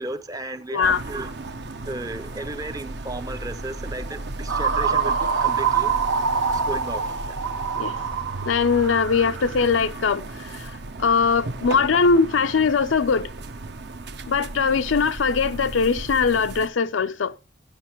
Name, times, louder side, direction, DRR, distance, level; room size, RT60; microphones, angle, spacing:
voice 1, 0.0-1.3 1.9-5.9 6.5-7.4, right 2 dB, 20° right, 0.6 m, -34 dB
sound 1, 0.8-16.7, right 2 dB, 55° right, 0.8 m, -35 dB
sound 2, 4.5-9.5, right 6 dB, 85° right, 1.0 m, -25 dB
voice 2, 8.4-13.3 14.3-17.4, left 5 dB, 75° left, 0.5 m, -21 dB
12.0 x 9.9 x 3.0 m
head